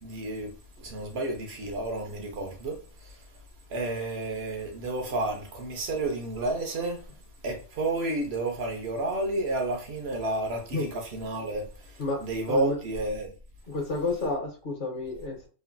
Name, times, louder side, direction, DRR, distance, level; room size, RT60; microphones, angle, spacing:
voice 1, 0.0-3.2 3.7-7.0 7.4-13.3, right 2 dB, 65° right, 0.9 m, -31 dB
voice 2, 13.7-15.5, left 2 dB, 50° left, 0.8 m, -30 dB
3.1 x 2.4 x 2.2 m
omnidirectional pair, 1.2 m